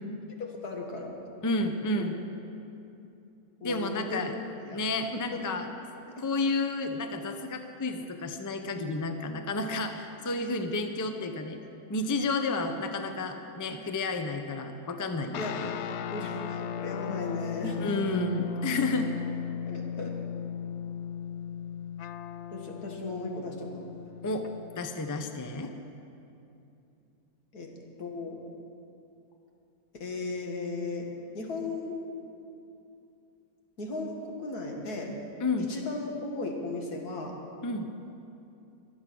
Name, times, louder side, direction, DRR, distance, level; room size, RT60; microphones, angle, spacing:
voice 1, 0.4-1.2 2.0-2.1 3.6-4.4 4.6-4.8 5.1-5.2 15.4-15.6 16.1-17.8 19.7-20.1 22.5-23.9 27.5-27.7 28.0-28.4 29.9-31.1 31.3-32.0 33.8-35.1 35.7-37.3, left 3 dB, 85° left, 0 dB, 2.3 m, -36 dB
voice 2, 1.4-2.2 3.6-4.3 4.7-5.7 6.2-11.6 11.9-15.7 17.8-19.2 24.2-24.5 24.8-25.7 35.4-35.7 37.6-37.9, left 2 dB, 20° left, 6 dB, 0.5 m, -31 dB
sound 1, 15.3-25.0, left 8 dB, 65° left, 0.7 m, -36 dB
23.5 x 8.1 x 6.2 m, 2.7 s
omnidirectional pair, 1.6 m